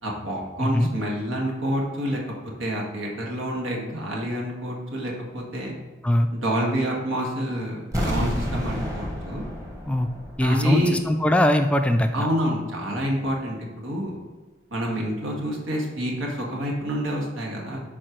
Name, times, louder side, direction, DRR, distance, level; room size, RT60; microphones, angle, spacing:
voice 1, 0.0-5.7 6.3-9.4 10.4-11.0 12.1-14.1 14.7-17.8, equal, 90° right, -1 dB, 1.8 m, -28 dB
voice 2, 0.6-0.9 6.0-6.3 9.9-10.1 10.4-12.3, left 1 dB, 5° left, 6 dB, 0.3 m, -21 dB
sound 1, 7.9-10.8 11.1-11.2, equal, 15° right, 1.1 m, -29 dB
11.0 x 4.3 x 3.1 m, 1.3 s
head